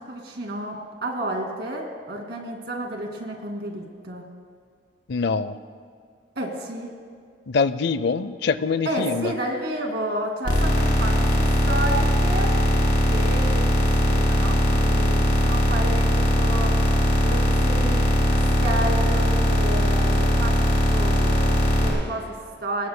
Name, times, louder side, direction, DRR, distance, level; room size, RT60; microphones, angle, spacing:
voice 1, 0.1-4.2 6.4-6.9 8.8-12.6 13.0-16.8 17.2-22.9, right 1 dB, 65° right, 1 dB, 2.4 m, -31 dB
voice 2, 5.1-5.6 7.5-9.3, left 5 dB, 65° left, 14 dB, 0.5 m, -24 dB
sound 1, 10.4-21.9, equal, 45° left, 3.8 m, -20 dB
22.5 x 19.0 x 2.2 m, 2.2 s
head